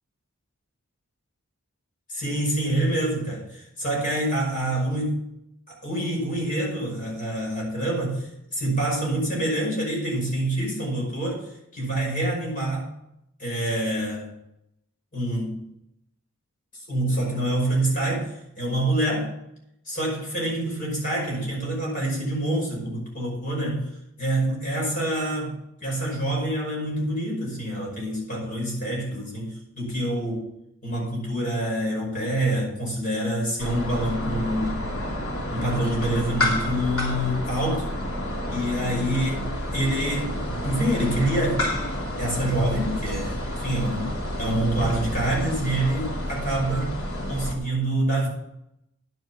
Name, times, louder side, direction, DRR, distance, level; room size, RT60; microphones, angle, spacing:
voice 1, 2.1-5.2 5.7-12.9 13.4-14.3 15.1-15.6 16.7-19.3 19.9-23.9 24.2-30.5 30.8-34.8 35.5-37.9 38.5-41.7 42.2-44.1 44.4-46.9 47.3-48.3, right 1 dB, 40° left, -3 dB, 5.6 m, -26 dB
ambience garage parking city Moscow, 33.6-47.5, left 1 dB, 80° left, 2.9 m, -29 dB
10.5 x 8.1 x 5.9 m, 0.81 s
head